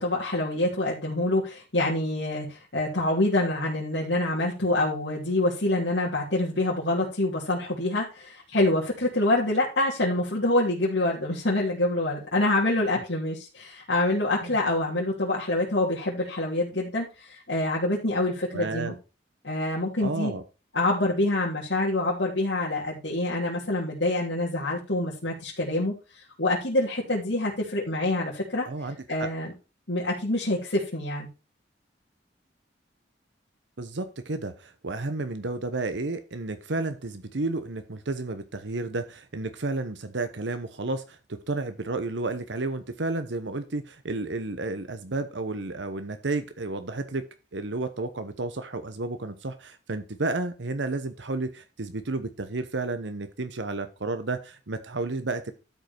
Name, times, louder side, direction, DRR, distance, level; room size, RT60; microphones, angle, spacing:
voice 1, 0.0-18.9 19.4-20.3 20.7-28.7 29.1-29.5 29.9-31.3, left 2 dB, 75° left, -7 dB, 3.1 m, -26 dB
voice 2, 18.5-18.9 20.0-20.4 28.7-29.3 33.8-55.5, right 2 dB, 75° right, 9 dB, 1.0 m, -32 dB
12.5 x 5.4 x 4.4 m, 0.32 s
head